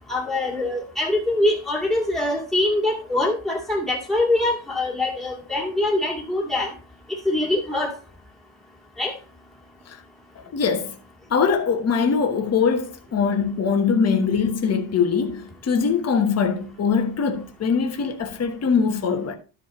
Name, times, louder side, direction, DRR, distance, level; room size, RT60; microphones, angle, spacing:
voice 1, 0.1-6.7 7.3-7.9 9.0-9.1, left 2 dB, ahead, 2.1 m, -23 dB
voice 2, 10.5-11.0 11.3-19.3, left 6 dB, 30° left, 1.1 m, -22 dB
12.5 x 4.9 x 4.2 m
cardioid pair, 170°, 47 cm